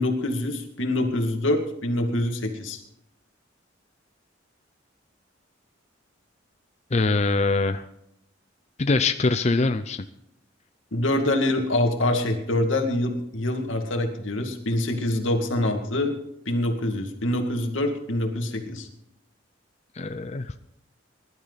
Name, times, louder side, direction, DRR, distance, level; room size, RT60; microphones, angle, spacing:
voice 1, 0.0-2.8 10.9-16.2 16.5-18.9, left 1 dB, 85° left, 4 dB, 2.3 m, -25 dB
voice 2, 6.9-7.9 8.8-10.0 20.0-20.5, left 3 dB, 35° left, 9 dB, 0.5 m, -23 dB
21.0 x 12.0 x 4.1 m, 0.78 s
head